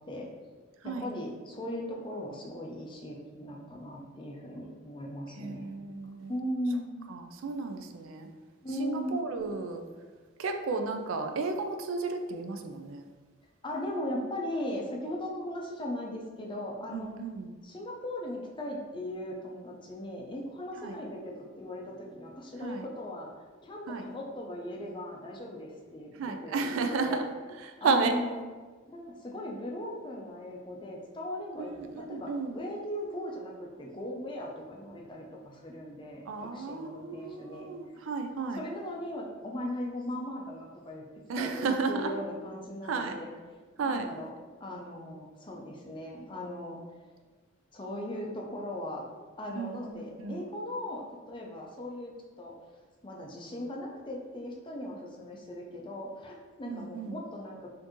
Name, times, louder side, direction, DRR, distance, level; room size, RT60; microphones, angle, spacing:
voice 1, 0.8-5.7 6.3-7.0 8.6-9.2 13.6-17.1 17.6-23.3 23.6-27.2 27.8-28.4 28.9-37.7 38.5-41.1 41.4-43.3 43.8-44.3 44.6-46.8 47.7-49.1 49.4-52.5 53.0-57.7, left 1 dB, 25° left, -1 dB, 0.4 m, -38 dB
voice 2, 5.4-6.4 7.1-8.3 8.8-9.8 10.4-13.1 16.9-17.6 20.8-21.0 22.6-22.9 23.9-24.1 26.1-28.1 31.6-32.6 36.3-38.6 41.3-42.1 42.8-43.2 43.8-44.1 49.5-50.4 56.7-57.2, right 4 dB, 75° right, 5 dB, 0.4 m, -33 dB
4.3 x 2.6 x 2.9 m, 1.4 s
head